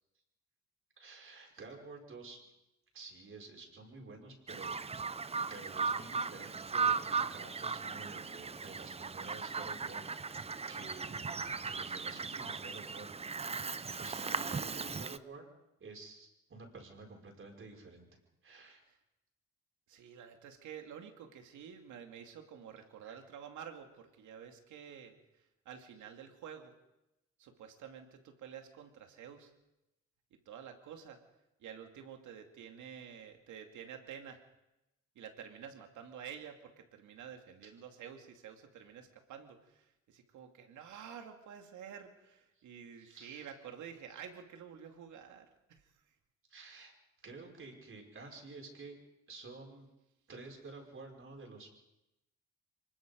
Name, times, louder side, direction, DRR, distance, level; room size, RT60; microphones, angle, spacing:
voice 1, 1.0-2.4 2.9-5.2 5.5-13.2 14.0-15.5 15.8-18.1 18.4-18.8 23.0-23.2 37.6-37.7 43.0-43.5 46.5-46.9 47.2-48.9 49.3-49.9 50.3-51.7, right 3 dB, 45° right, 1 dB, 5.5 m, -51 dB
Bird vocalization bird call bird song, 4.5-15.2, right 5 dB, 20° right, 0.6 m, -37 dB
voice 2, 13.8-14.6 18.9-19.0 19.9-26.7 27.4-29.5 30.5-31.2 31.6-34.4 35.1-46.2, right 8 dB, 85° right, 5 dB, 2.5 m, -50 dB
24.5 x 20.5 x 5.3 m, 0.93 s
cardioid pair, 90°, 29 cm